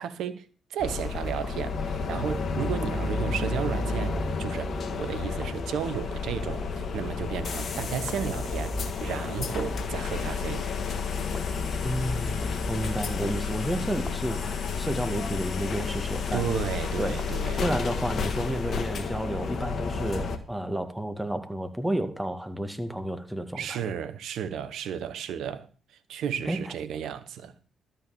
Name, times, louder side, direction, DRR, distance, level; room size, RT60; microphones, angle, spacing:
voice 1, 0.0-8.7 9.0-10.7 16.3-17.7 23.6-27.5, right 8 dB, 70° right, 1.0 m, -33 dB
sound 1, 0.8-20.4, left 4 dB, 55° left, 1.5 m, -31 dB
sound 2, 1.4-1.6 2.8-3.0 4.2-4.3 5.4-5.6 6.6-6.8 8.1-8.3 9.6-9.8 11.3-11.6 12.4-12.7 13.2-13.5 14.0-14.3 15.7-15.9 17.2-17.5 18.7-19.0, left 1 dB, 25° left, 2.6 m, -42 dB
voice 2, 11.8-16.4 17.0-17.2 17.6-23.9 26.5-26.6, right 1 dB, 10° right, 2.1 m, -31 dB
12.5 x 5.7 x 7.2 m
hypercardioid pair, 45°, 0 cm